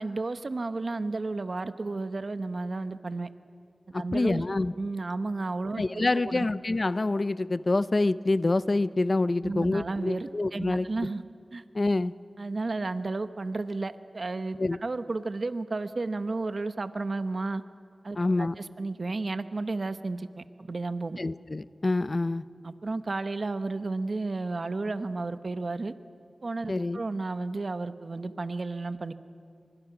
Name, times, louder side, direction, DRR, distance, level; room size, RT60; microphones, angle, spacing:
voice 1, 0.0-3.3 3.9-4.4 4.7-6.5 9.4-11.2 11.5-11.6 12.4-17.6 18.0-21.2 22.6-25.9 26.4-29.1, right 3 dB, 65° right, 10 dB, 1.1 m, -32 dB
voice 2, 3.9-4.7 5.8-10.9 11.7-12.1 14.6-14.8 18.2-18.5 21.2-22.4 26.7-27.0, left 2 dB, 50° left, 15 dB, 0.7 m, -26 dB
30.0 x 25.0 x 6.1 m, 2.3 s
cardioid pair, 45°, 0 cm